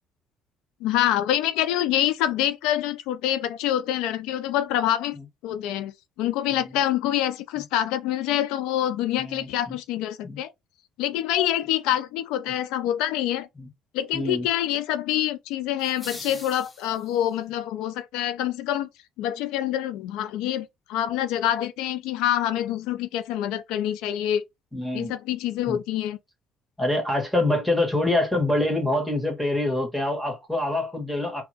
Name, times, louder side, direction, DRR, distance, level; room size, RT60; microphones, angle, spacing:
voice 1, 0.8-5.2 5.4-5.9 6.2-10.5 11.0-13.5 13.9-18.9 19.2-24.4 24.9-26.2, left 12 dB, 85° left, 0.5 m, -26 dB
voice 2, 9.2-9.8 10.2-10.4 13.6-13.7 14.1-14.5 24.7-25.1 25.7-25.8 26.8-31.4, left 1 dB, ahead, 1.9 m, -25 dB
sound 1, 15.8-17.4, left 2 dB, 20° left, 0.8 m, -42 dB
3.7 x 2.9 x 2.9 m
cardioid pair, 105°, 0 cm